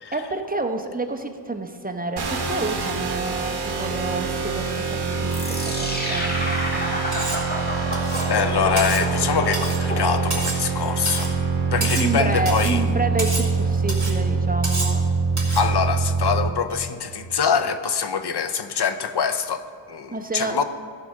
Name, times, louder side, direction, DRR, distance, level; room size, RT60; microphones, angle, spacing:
voice 1, 0.1-7.0 11.8-15.1 20.1-20.6, right 3 dB, 20° right, 5 dB, 0.8 m, -29 dB
sound 1, 2.2-16.5, right 4 dB, 60° right, 1.3 m, -24 dB
sound 2, 5.3-10.6, equal, 20° left, 1.6 m, -30 dB
Cutlery silverware, 7.1-7.5 7.9-8.3 8.8-9.1 9.5-9.8 10.3-10.7 11.1-11.3 11.8-12.2 12.5-12.8 13.2-13.5 13.9-14.2 14.6-15.0 15.4-15.7, right 2 dB, 40° right, 3.0 m, -29 dB
voice 2, 8.3-11.3 11.7-12.8 15.5-20.6, left 6 dB, 60° left, 10 dB, 0.6 m, -24 dB
14.5 x 4.9 x 6.4 m, 2.4 s
wide cardioid pair, 80°, 45 cm